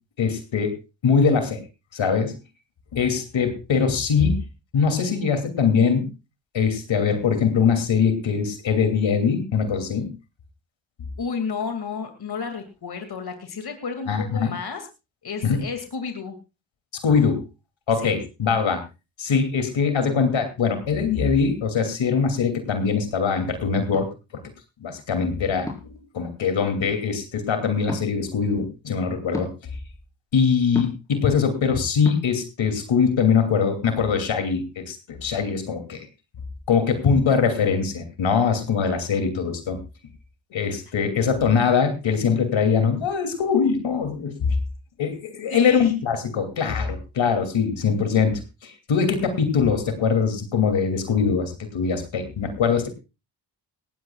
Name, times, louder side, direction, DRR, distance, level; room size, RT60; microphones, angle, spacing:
voice 1, 0.2-0.7 1.0-1.6 1.9-2.3 2.9-4.4 4.7-6.1 6.5-10.1 14.1-14.5 15.4-15.6 17.0-17.4 17.9-18.8 19.2-24.1 24.3-24.4 24.8-29.5 30.3-36.1 36.7-39.8 40.5-44.3 45.0-52.9, left 6 dB, 70° left, 7 dB, 2.9 m, -22 dB
voice 2, 11.2-14.9 15.2-16.4 18.0-18.2 45.5-45.9, left 5 dB, 50° left, 6 dB, 2.4 m, -32 dB
sound 1, 23.9-24.1 25.7-26.0 27.8-28.1 29.3-29.5 30.7-31.1 32.0-32.2, left 2 dB, 5° left, 4.8 m, -32 dB
19.0 x 15.5 x 2.4 m, 0.28 s
cardioid pair, 65°, 47 cm